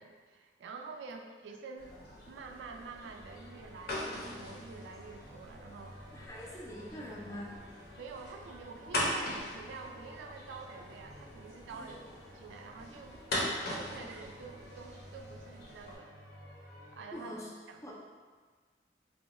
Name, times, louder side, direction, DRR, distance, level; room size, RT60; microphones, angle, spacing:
voice 1, 0.0-2.0 2.3-6.2 8.0-12.0 12.3-16.2 16.9-17.4 17.7-17.8, right 4 dB, 75° right, 3 dB, 0.3 m, -48 dB
sound 1, 1.8-15.9, left 1 dB, 60° left, 0.8 m, -41 dB
sound 2, 3.1-17.1, equal, 20° right, 0.7 m, -54 dB
voice 2, 6.1-7.6 11.7-12.1 17.1-17.5 17.8-17.9, equal, 15° left, -4 dB, 0.4 m, -44 dB
2.7 x 2.2 x 4.1 m, 1.5 s
head